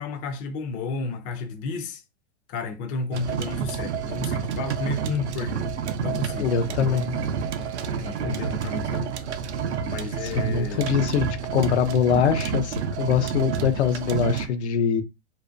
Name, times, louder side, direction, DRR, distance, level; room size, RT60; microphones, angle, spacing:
voice 1, 0.0-2.0 2.5-5.7 6.0-7.2 8.0-9.1 9.8-10.8, left 4 dB, 25° left, 0.4 m, -32 dB
sound 1, 3.1-14.5, right 7 dB, 90° right, 0.5 m, -29 dB
Wind instrument woodwind instrument, 5.8-9.6, right 6 dB, 70° right, 0.9 m, -48 dB
voice 2, 6.4-7.1 10.2-15.0, left 7 dB, 80° left, 0.6 m, -23 dB
2.6 x 2.1 x 2.5 m
hypercardioid pair, 115°, 33 cm